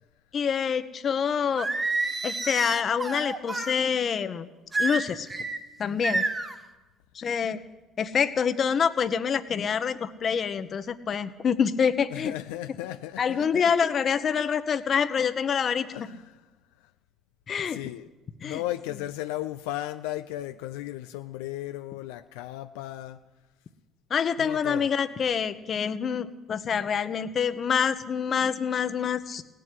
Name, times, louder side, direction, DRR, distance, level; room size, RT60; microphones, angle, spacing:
voice 1, 0.3-1.7 2.2-4.5 4.8-5.3 5.8-6.2 7.1-7.6 8.0-12.3 13.2-15.9 17.5-17.8 18.4-18.6 24.1-29.4, left 7 dB, 45° left, 12 dB, 0.9 m, -26 dB
Singing, 1.6-3.7 4.7-5.6 6.0-6.6, right 3 dB, 25° right, 1.5 m, -29 dB
voice 2, 12.1-13.7 15.6-16.4 16.8-16.9 17.7-18.1 18.4-23.2 24.4-24.9, left 15 dB, 85° left, 9 dB, 0.4 m, -35 dB
17.0 x 7.7 x 9.8 m, 1.2 s
supercardioid pair, 70°, 0 cm